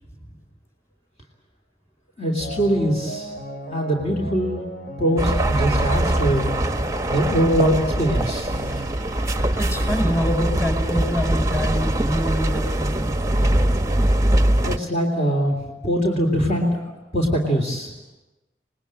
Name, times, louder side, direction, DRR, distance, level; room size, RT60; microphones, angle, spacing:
voice 1, 2.2-3.3 3.7-4.6 5.0-6.5 7.1-8.5 14.6-17.9, equal, 40° left, 0 dB, 3.1 m, -22 dB
sound 1, 2.4-10.6, right 1 dB, 55° left, 4.3 m, -35 dB
sound 2, 5.2-14.8, right 1 dB, 20° right, 0.9 m, -22 dB
voice 2, 9.6-13.2 15.7-15.9, equal, 15° left, 5 dB, 4.6 m, -26 dB
27.5 x 19.5 x 8.9 m, 1.0 s
head